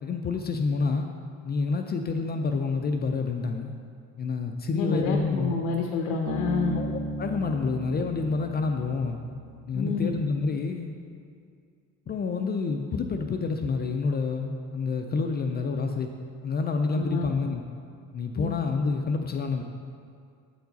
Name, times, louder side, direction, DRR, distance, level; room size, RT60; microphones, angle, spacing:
voice 1, 0.0-1.1 1.4-3.7 4.2-5.5 6.7-9.2 9.7-10.9 12.1-16.1 16.4-17.6 18.1-19.6, left 4 dB, 30° left, 4 dB, 0.4 m, -28 dB
voice 2, 4.7-6.8 9.7-10.1 16.9-17.3 18.4-18.5, left 5 dB, 85° left, 2 dB, 0.7 m, -28 dB
Bass guitar, 6.3-9.8, right 1 dB, 80° right, 1.3 m, -35 dB
8.2 x 4.6 x 4.0 m, 2.3 s
cardioid pair, 105°, 33 cm